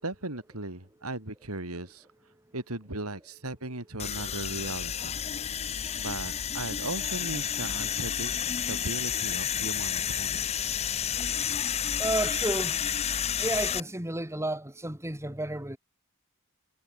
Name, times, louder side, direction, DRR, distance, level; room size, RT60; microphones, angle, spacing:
voice 1, 0.0-5.2 5.9-8.3 8.7-10.7, right 2 dB, 85° right, 5.1 m, -37 dB
sound 1, 4.0-13.8, left 9 dB, 30° left, 0.5 m, -31 dB
voice 2, 12.0-12.9 13.4-15.8, right 1 dB, 15° right, 3.7 m, -31 dB
head